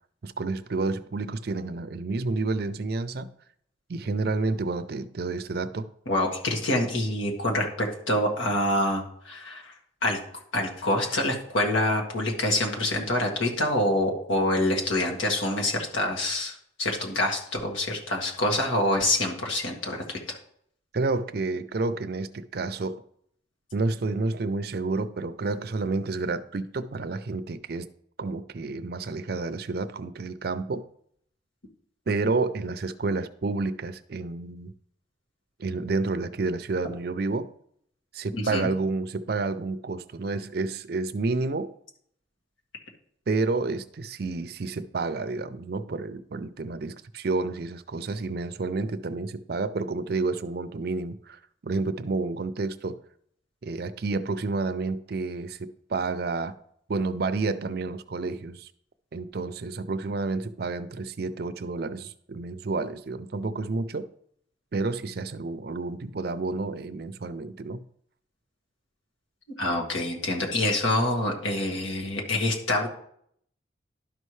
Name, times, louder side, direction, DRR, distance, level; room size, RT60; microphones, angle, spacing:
voice 1, 0.2-3.3 3.9-5.9 20.9-23.0 23.7-27.9 28.2-30.9 32.1-34.7 35.6-37.5 38.1-41.7 43.3-53.0 53.6-56.6 56.9-58.7 59.1-64.1 64.7-67.8, right 3 dB, 55° right, 0.5 m, -30 dB
voice 2, 6.1-9.7 10.0-10.2 10.5-20.4 38.3-38.7 69.6-72.9, left 1 dB, 90° left, 1.8 m, -26 dB
12.0 x 5.5 x 3.2 m
head